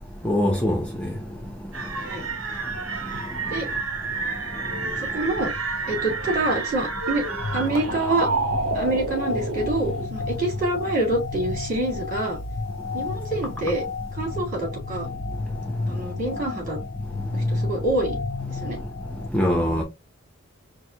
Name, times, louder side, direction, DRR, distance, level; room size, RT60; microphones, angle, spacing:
voice 1, 0.2-0.8 19.3-19.8, left 1 dB, 5° left, 0.6 m, -21 dB
sound 1, 1.7-10.1, right 4 dB, 80° right, 1.0 m, -29 dB
voice 2, 5.1-5.5 5.9-7.2 7.5-8.3 8.7-12.4 12.9-13.8 14.2-15.1 15.9-16.8 17.3-18.2 18.5-18.8, right 2 dB, 40° right, 2.7 m, -26 dB
sound 2, 7.4-19.3, left 3 dB, 45° left, 0.5 m, -31 dB
4.6 x 2.1 x 3.7 m
head